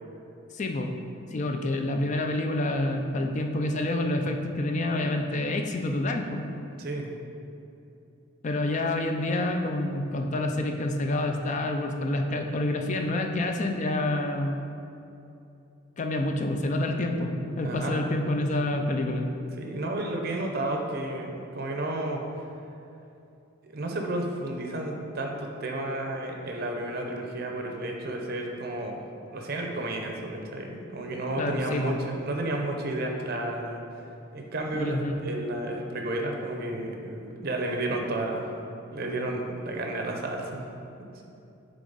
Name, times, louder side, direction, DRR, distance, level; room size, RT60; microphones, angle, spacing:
voice 1, 0.5-0.9 1.3-6.4 8.4-14.6 16.0-19.3 31.4-32.0 34.7-35.1, left 1 dB, 35° left, 4 dB, 0.4 m, -28 dB
voice 2, 17.6-18.0 19.6-22.2 23.6-29.0 29.3-33.8 34.3-38.5 38.9-40.6, right 1 dB, 50° right, 2 dB, 0.6 m, -32 dB
6.8 x 3.6 x 3.9 m, 2.7 s
head